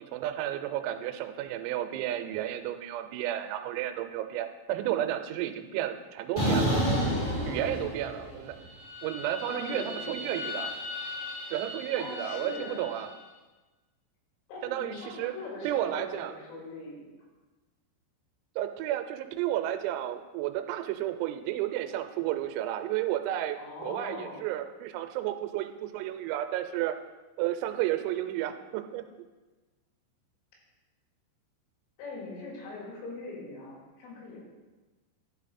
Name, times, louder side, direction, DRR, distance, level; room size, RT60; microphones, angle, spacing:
voice 1, 0.0-6.8 7.5-8.6 9.0-10.7 11.5-13.1 14.6-15.3 15.6-16.3 18.6-26.9 27.4-29.0, right 12 dB, 90° right, 8 dB, 3.3 m, -32 dB
sound 1, 6.4-8.3 8.6-12.9, equal, 35° left, 0.7 m, -32 dB
voice 2, 7.5-8.6 9.5-10.5 11.9-12.9 14.5-17.1 23.6-24.5 32.0-34.4, left 3 dB, 75° left, -3 dB, 4.4 m, -42 dB
11.5 x 5.2 x 4.2 m, 1.2 s
omnidirectional pair, 5.9 m